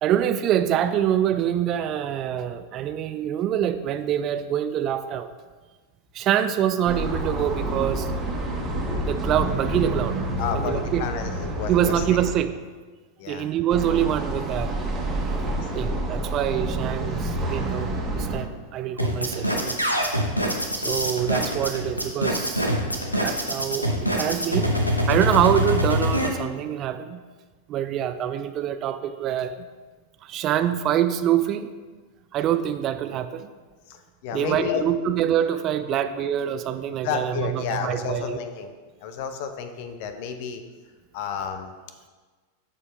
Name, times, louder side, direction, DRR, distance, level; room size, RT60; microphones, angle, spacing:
voice 1, 0.0-5.3 6.1-8.1 9.0-10.2 10.5-11.0 11.7-12.5 13.3-14.7 15.7-19.8 20.8-22.7 23.2-24.7 25.1-27.2 27.7-29.6 30.2-31.7 32.3-33.5 34.3-38.4, right 10 dB, 35° right, 10 dB, 0.4 m, -25 dB
sound 1, 6.9-12.3 13.7-18.4, right 1 dB, 20° right, 1.5 m, -28 dB
voice 2, 10.4-12.0 13.2-13.5 33.9-35.1 35.9-36.0 37.0-38.7 39.0-40.6 41.1-41.8, left 6 dB, 50° left, 8 dB, 0.7 m, -31 dB
sound 2, 19.0-26.3, equal, 90° left, 0.9 m, -24 dB
13.0 x 4.6 x 3.3 m, 1.4 s
figure-of-eight pair, 90°, 0 cm